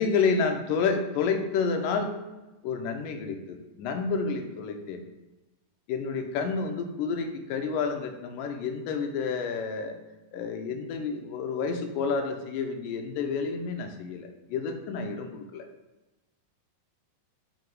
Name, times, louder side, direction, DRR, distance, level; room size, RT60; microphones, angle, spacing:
voice 1, 0.0-2.1 2.6-5.0 5.9-10.0 10.3-15.6, left 5 dB, 80° left, 5 dB, 2.3 m, -29 dB
5.4 x 4.9 x 4.6 m, 1.1 s
omnidirectional pair, 4.0 m